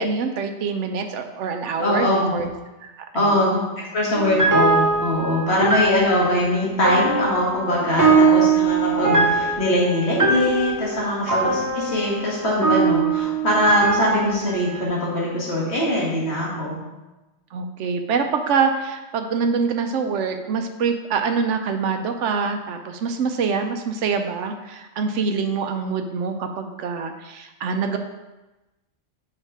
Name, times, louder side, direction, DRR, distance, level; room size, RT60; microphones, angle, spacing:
voice 1, 0.0-2.5 2.8-3.7 4.4-4.7 11.4-11.5 17.5-28.0, right 5 dB, 80° right, 6 dB, 1.0 m, -25 dB
voice 2, 1.8-2.3 3.1-16.8, left 1 dB, 65° left, -5 dB, 2.0 m, -22 dB
sound 1, 4.1-14.8, right 4 dB, 20° right, 0.5 m, -21 dB
5.4 x 4.7 x 4.8 m, 1.1 s
omnidirectional pair, 1.2 m